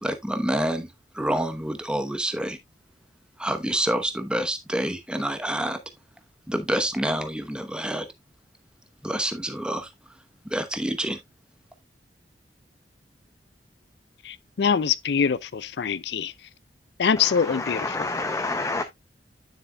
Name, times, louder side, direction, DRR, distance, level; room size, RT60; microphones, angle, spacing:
voice 1, 0.0-2.6 3.4-5.8 6.5-8.1 9.0-9.9 10.5-11.2, right 1 dB, 5° right, 0.9 m, -27 dB
voice 2, 14.6-16.3 17.0-17.8, left 6 dB, 65° left, 0.4 m, -23 dB
voice 3, 17.2-18.8, left 3 dB, 15° left, 0.5 m, -29 dB
9.5 x 6.8 x 2.2 m
head